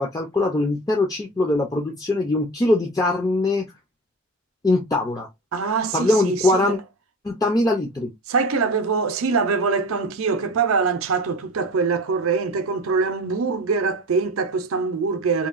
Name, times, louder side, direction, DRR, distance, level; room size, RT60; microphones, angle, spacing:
voice 1, 0.0-3.7 4.6-5.3 5.9-6.8 7.2-8.1, left 2 dB, 15° left, 0.4 m, -22 dB
voice 2, 5.5-6.8 8.3-15.5, right 5 dB, 75° right, 0.5 m, -23 dB
2.8 x 2.2 x 2.3 m
head